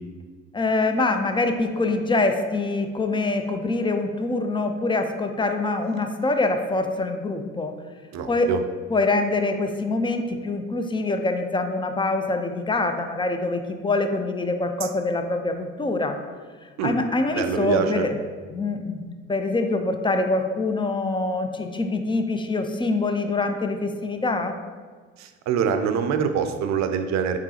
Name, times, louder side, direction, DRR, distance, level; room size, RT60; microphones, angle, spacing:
voice 1, 0.5-7.7 8.3-8.5 8.9-16.2 16.8-18.2 18.5-24.5, left 2 dB, 15° left, 6 dB, 0.4 m, -24 dB
voice 2, 8.1-8.6 14.8-14.9 16.8-16.9 17.3-18.1 25.2-27.4, right 7 dB, 50° right, 8 dB, 0.5 m, -25 dB
4.7 x 3.7 x 2.8 m, 1.5 s
hypercardioid pair, 50°, 36 cm